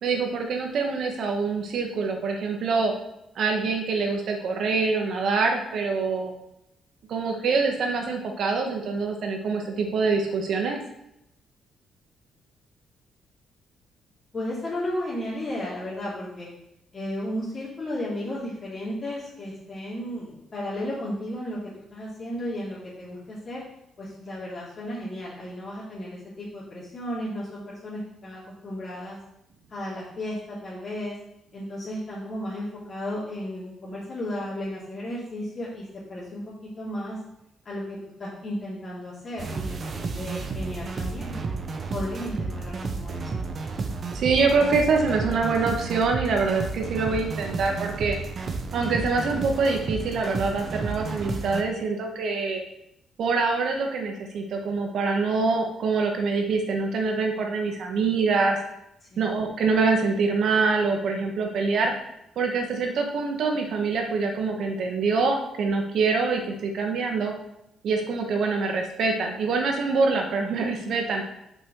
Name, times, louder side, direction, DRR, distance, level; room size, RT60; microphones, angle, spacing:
voice 1, 0.0-2.9 3.3-6.3 7.1-10.8 44.1-48.2 48.7-52.6 53.2-58.6 59.2-61.9 62.3-67.3 67.8-71.2, right 4 dB, 65° right, 3 dB, 1.6 m, -25 dB
voice 2, 14.3-16.5 16.9-23.6 24.0-29.2 29.7-31.1 31.5-37.2 37.6-41.3 41.9-43.3 59.1-59.3, left 1 dB, 40° left, -8 dB, 2.8 m, -34 dB
sound 1, 39.4-51.6, right 4 dB, 45° right, 1.0 m, -32 dB
6.2 x 5.1 x 6.3 m, 0.83 s
cardioid pair, 90°, 0 cm